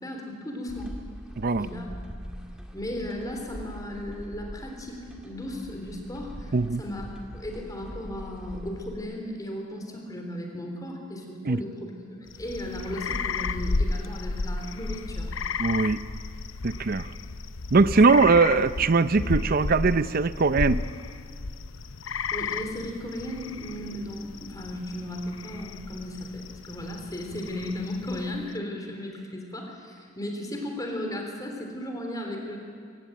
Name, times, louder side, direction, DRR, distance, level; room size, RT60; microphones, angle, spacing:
voice 1, 0.0-0.9 1.6-1.9 2.3-2.4 2.7-15.3 17.9-18.1 22.3-32.6, left 1 dB, 20° left, 2 dB, 3.6 m, -36 dB
sound 1, 0.7-9.0, equal, 5° right, 1.9 m, -42 dB
voice 2, 1.4-1.7 6.5-6.8 11.5-11.6 15.6-16.0 16.6-17.1 17.7-20.8, right 4 dB, 45° right, 14 dB, 0.6 m, -21 dB
sound 2, 12.3-28.5, left 3 dB, 75° left, 0.7 m, -33 dB
24.0 x 16.5 x 9.3 m, 2.1 s
head